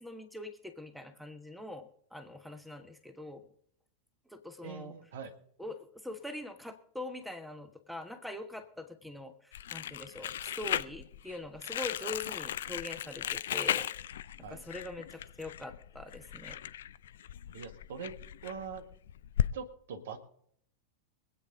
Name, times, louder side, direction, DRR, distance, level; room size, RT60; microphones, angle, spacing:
voice 1, 0.0-3.4 4.3-4.9 5.6-13.9 14.5-16.6, left 2 dB, ahead, 8 dB, 1.3 m, -43 dB
voice 2, 4.6-5.3 14.4-14.6 17.5-18.1 18.4-18.8 19.5-20.2, right 6 dB, 60° right, 8 dB, 1.7 m, -42 dB
Crumpling crinkling, 9.5-19.5, left 11 dB, 60° left, 0.5 m, -36 dB
24.0 x 9.1 x 3.8 m, 0.65 s
figure-of-eight pair, 90°, 0 cm